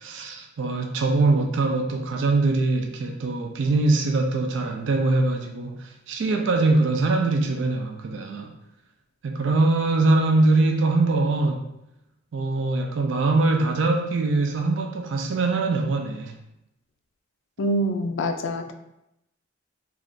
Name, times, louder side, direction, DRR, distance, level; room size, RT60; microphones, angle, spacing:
voice 1, 0.0-8.6 9.2-11.7 12.3-16.3, right 3 dB, 65° right, 3 dB, 0.3 m, -22 dB
voice 2, 17.6-18.7, equal, 65° left, 6 dB, 0.3 m, -25 dB
2.5 x 2.3 x 3.5 m, 0.85 s
head